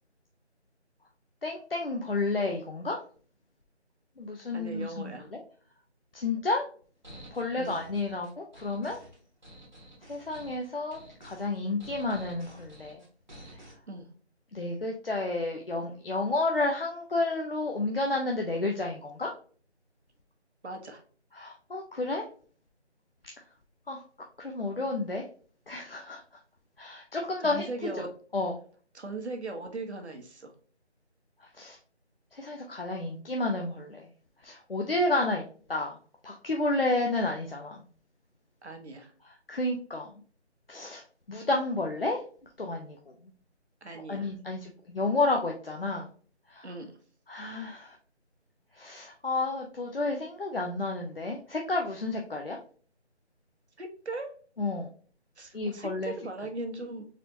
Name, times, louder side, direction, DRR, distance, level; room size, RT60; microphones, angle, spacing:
voice 1, 1.4-3.0 4.2-5.4 6.1-6.6 7.3-9.0 10.1-13.0 14.5-19.3 21.3-22.2 23.9-24.0 24.4-25.2 25.7-26.2 26.8-27.6 28.0-28.1 28.3-28.5 31.5-31.8 32.3-34.0 34.4-35.4 35.7-36.0 36.2-37.8 39.3-40.1 40.7-41.0 41.3-42.2 42.6-43.0 44.1-46.1 46.5-46.7 47.3-48.0 48.8-52.6 54.6-54.9 55.5-56.1, left 2 dB, 55° left, 1 dB, 0.6 m, -31 dB
voice 2, 4.5-5.3 7.6-7.8 13.9-14.1 20.6-21.0 27.4-28.1 28.9-30.5 38.6-39.1 43.8-44.3 46.6-47.0 53.8-54.3 55.4-57.1, right 2 dB, 70° right, 4 dB, 1.1 m, -39 dB
sound 1, 7.0-13.8, right 1 dB, 40° right, 1.1 m, -50 dB
4.1 x 2.8 x 2.6 m, 0.43 s
figure-of-eight pair, 180°, 34 cm